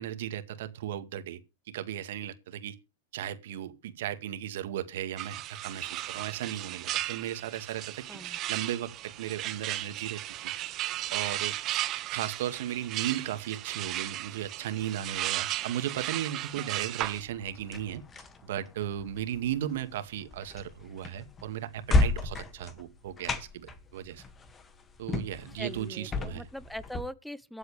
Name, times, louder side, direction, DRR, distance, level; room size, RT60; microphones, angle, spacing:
voice 1, 0.0-1.4 1.7-2.8 3.1-10.5 11.1-11.5 12.1-18.0 18.4-24.2 25.0-26.5, right 11 dB, 70° right, 2.1 m, -36 dB
sound 1, 5.2-17.2, right 14 dB, 40° right, 1.6 m, -35 dB
sound 2, 17.0-27.0, left 2 dB, 20° left, 2.1 m, -34 dB
voice 2, 25.6-27.6, equal, ahead, 1.0 m, -41 dB
23.5 x 7.9 x 3.4 m
hypercardioid pair, 110°, 0 cm